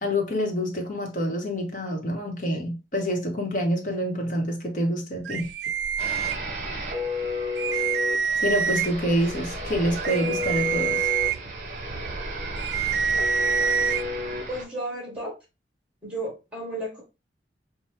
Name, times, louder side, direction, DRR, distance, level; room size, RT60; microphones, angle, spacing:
voice 1, 0.0-5.5 7.7-7.8 8.4-11.1, equal, 45° left, 1.0 m, -27 dB
sound 1, 5.3-6.8 7.2-7.3 7.6-9.1 9.6-14.0, right 7 dB, 70° right, 0.3 m, -27 dB
sound 2, 6.0-14.6, left 2 dB, 45° right, 0.8 m, -32 dB
voice 2, 14.5-15.3 16.0-17.0, right 1 dB, 5° right, 1.9 m, -33 dB
4.3 x 2.2 x 3.2 m
head